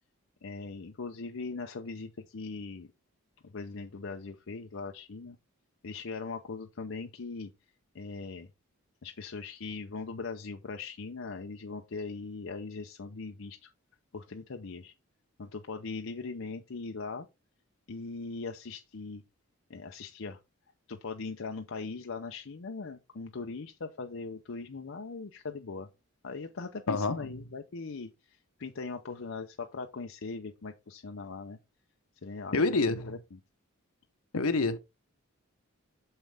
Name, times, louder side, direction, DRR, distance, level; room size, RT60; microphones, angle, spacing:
voice 1, 0.4-2.9 3.4-5.4 5.8-7.5 7.9-8.5 9.0-13.7 14.1-14.9 15.4-17.3 17.9-19.2 19.7-20.4 20.9-25.9 26.2-31.6 32.2-33.4, left 4 dB, 65° left, 0.6 m, -40 dB
voice 2, 26.9-27.2 32.5-33.1 34.3-34.8, left 3 dB, 80° left, 0.9 m, -27 dB
6.5 x 5.6 x 3.4 m
head